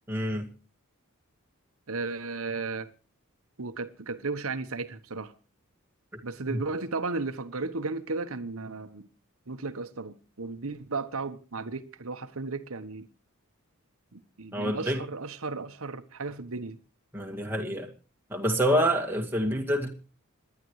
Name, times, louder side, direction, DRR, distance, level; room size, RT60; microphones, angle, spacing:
voice 1, 0.1-0.5 6.5-6.6 14.5-15.0 17.1-17.9 18.3-19.9, equal, 10° right, 2.0 m, -27 dB
voice 2, 1.9-2.9 3.6-5.3 6.2-9.1 9.5-13.1 14.1-16.8, right 3 dB, 70° right, 1.1 m, -34 dB
26.5 x 11.0 x 3.2 m
head